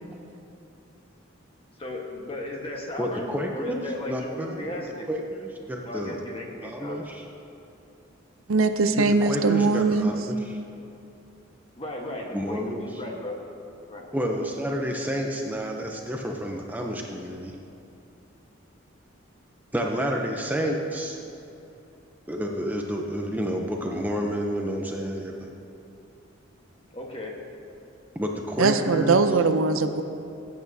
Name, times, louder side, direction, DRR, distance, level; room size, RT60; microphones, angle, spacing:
voice 1, 1.8-5.1 5.8-7.1 11.8-13.4 13.9-14.1 26.9-27.3, left 1 dB, 30° left, 0 dB, 1.2 m, -35 dB
voice 2, 3.0-4.8 5.1-6.2 6.6-7.2 9.0-10.6 12.3-12.8 14.1-17.6 19.7-21.2 22.3-25.5 28.1-29.3, equal, 10° right, 1 dB, 0.5 m, -30 dB
voice 3, 8.5-10.1 28.6-30.0, right 4 dB, 85° right, 9 dB, 0.6 m, -21 dB
17.0 x 8.5 x 2.7 m, 2.8 s
head